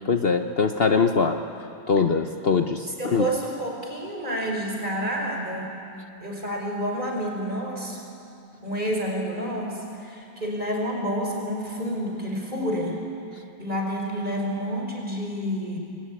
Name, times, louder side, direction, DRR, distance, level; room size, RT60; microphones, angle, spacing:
voice 1, 0.1-1.4 1.9-3.3, left 5 dB, 80° left, 6 dB, 0.5 m, -22 dB
voice 2, 2.9-5.7 6.2-8.0 8.6-13.0 13.6-15.8, equal, 20° right, 1 dB, 5.1 m, -29 dB
27.0 x 22.0 x 9.9 m, 2.7 s
omnidirectional pair, 2.4 m